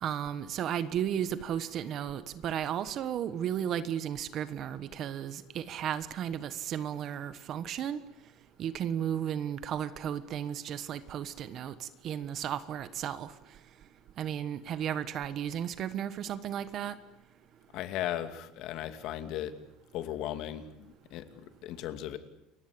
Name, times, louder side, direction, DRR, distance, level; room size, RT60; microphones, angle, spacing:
voice 1, 0.0-8.0 8.6-13.3 14.2-17.0, right 9 dB, 40° right, 13 dB, 1.3 m, -34 dB
voice 2, 17.7-19.5 19.9-22.2, left 12 dB, 50° left, 9 dB, 2.5 m, -37 dB
29.0 x 23.0 x 8.6 m, 0.86 s
cardioid pair, 160°, 0 cm